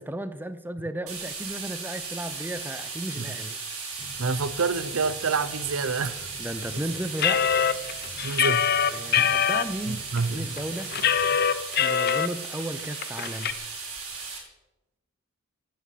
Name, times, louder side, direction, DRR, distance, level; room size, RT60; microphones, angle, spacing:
voice 1, 0.0-3.6 6.4-7.5 8.9-10.9 11.8-13.6, right 1 dB, 10° right, 0.7 m, -34 dB
sound 1, 1.1-14.4, right 4 dB, 85° right, 5.8 m, -36 dB
sound 2, 4.0-11.4, equal, 20° left, 6.0 m, -48 dB
voice 2, 4.2-6.3 6.7-6.8 8.2-8.7 9.2-9.4 9.9-10.5, right 4 dB, 70° right, 0.8 m, -28 dB
sound 3, 7.2-9.6 10.2-10.3 10.6-12.3 12.6-12.7 13.0-13.5, left 8 dB, 45° left, 0.8 m, -23 dB
17.0 x 10.0 x 7.4 m
head